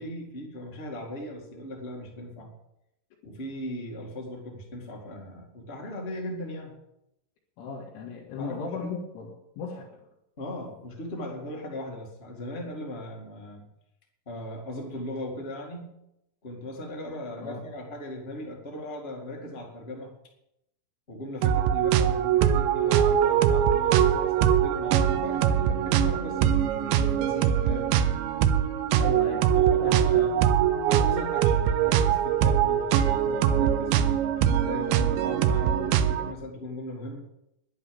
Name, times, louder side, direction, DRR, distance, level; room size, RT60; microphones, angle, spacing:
voice 1, 0.0-2.5 3.2-6.7 8.4-8.9 10.4-13.6 14.2-15.9 16.4-20.1 21.1-27.9 29.5-30.4 30.8-37.2, left 1 dB, 50° left, -1 dB, 0.7 m, -38 dB
voice 2, 7.6-10.1 17.4-17.7 29.0-29.5 29.8-30.3, left 4 dB, 80° left, -3 dB, 4.2 m, -36 dB
sound 1, 21.4-36.3, right 10 dB, 85° right, 3.0 m, -23 dB
11.0 x 11.0 x 7.0 m, 0.84 s
omnidirectional pair, 5.4 m